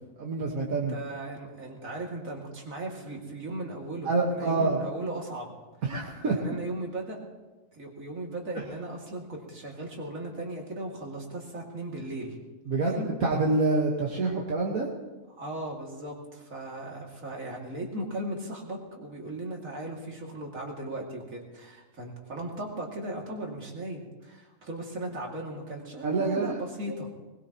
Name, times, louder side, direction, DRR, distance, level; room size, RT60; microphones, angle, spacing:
voice 1, 0.2-1.0 4.0-4.8 5.8-6.5 12.7-14.9 26.0-26.5, right 3 dB, 90° right, -3 dB, 2.0 m, -27 dB
voice 2, 0.7-5.5 6.3-7.2 7.7-12.4 12.8-13.1 15.3-27.1, right 1 dB, 75° right, -1 dB, 2.9 m, -37 dB
21.0 x 20.5 x 3.0 m, 1.2 s
omnidirectional pair, 1.4 m